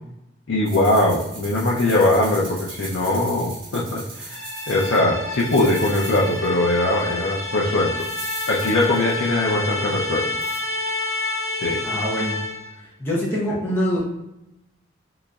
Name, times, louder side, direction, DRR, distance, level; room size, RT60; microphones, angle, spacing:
voice 1, 0.5-8.1 8.5-10.3 11.6-11.8, left 1 dB, 85° left, -4 dB, 0.5 m, -21 dB
sound 1, 0.6-5.0 5.3-6.5 6.7-6.8 8.0-9.3 10.4-10.6, right 3 dB, 80° right, 1.3 m, -38 dB
sound 2, 4.3-12.7, left 2 dB, 70° left, 1.1 m, -29 dB
voice 2, 11.8-12.4 13.0-14.0, equal, 10° left, -7 dB, 0.7 m, -24 dB
3.9 x 2.9 x 2.3 m, 0.89 s
head